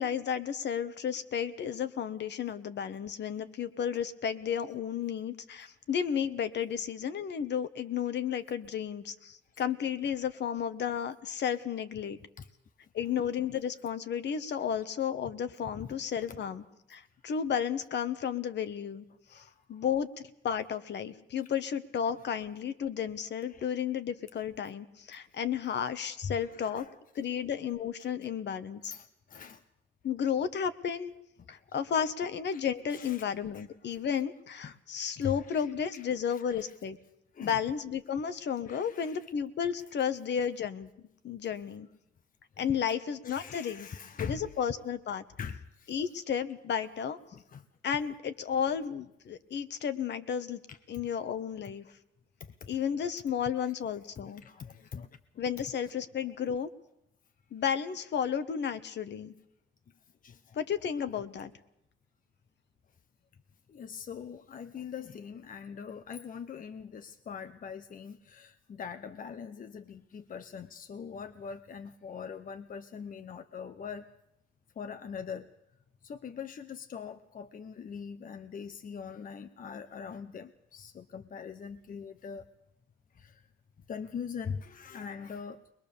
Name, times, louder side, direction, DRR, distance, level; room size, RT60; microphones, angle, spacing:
voice 1, 0.0-12.2 12.9-16.6 16.9-19.0 19.3-19.4 19.7-26.9 27.1-28.9 30.0-31.1 31.5-37.0 37.4-41.9 42.6-43.9 44.2-45.2 45.9-47.2 47.8-50.6 50.9-51.8 52.7-54.4 55.4-56.7 57.5-59.3 60.5-61.5, left 8 dB, 60° left, 11 dB, 1.3 m, -33 dB
voice 2, 19.3-19.8 23.5-23.6 26.4-26.9 28.8-29.6 32.5-32.6 32.9-33.2 33.5-33.7 34.6-34.7 35.2-35.7 35.9-36.6 37.3-37.6 38.7-39.2 42.6-42.8 43.2-44.5 45.4-45.9 47.3-47.7 50.7-50.8 52.4-52.7 54.2-55.1 60.2-60.6 63.7-74.1 74.8-75.5 76.0-82.4 83.1-83.5 83.9-85.7, left 6 dB, 45° left, 10 dB, 0.9 m, -42 dB
21.5 x 21.5 x 6.9 m, 0.82 s
cardioid pair, 90°, 20 cm